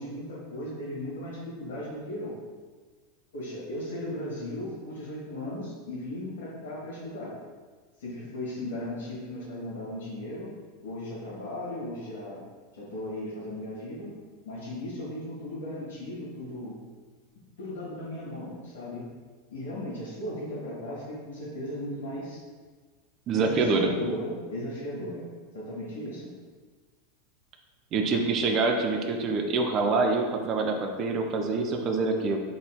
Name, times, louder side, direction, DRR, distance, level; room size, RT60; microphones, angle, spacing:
voice 1, 0.0-2.3 3.3-7.3 8.0-10.5 10.8-12.4 12.7-14.1 14.4-16.8 17.6-19.0 19.5-22.4 23.3-25.2 25.5-26.3, left 1 dB, 70° left, -6 dB, 1.5 m, -36 dB
voice 2, 23.3-23.9 27.9-32.4, right 3 dB, 40° right, 3 dB, 0.5 m, -26 dB
4.0 x 3.8 x 2.2 m, 1.5 s
figure-of-eight pair, 90°, 0 cm